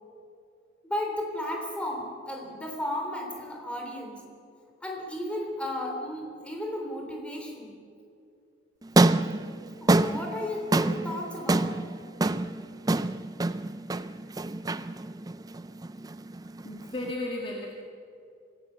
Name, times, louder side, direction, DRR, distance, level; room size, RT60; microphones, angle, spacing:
voice 1, 0.8-4.2 4.8-7.7 9.8-11.9, left 1 dB, 5° left, 1 dB, 3.3 m, -34 dB
sound 1, 8.8-17.1, right 2 dB, 20° right, 0.4 m, -27 dB
voice 2, 16.6-17.7, left 1 dB, 25° left, -1 dB, 1.8 m, -34 dB
24.5 x 16.5 x 6.9 m, 2.5 s
head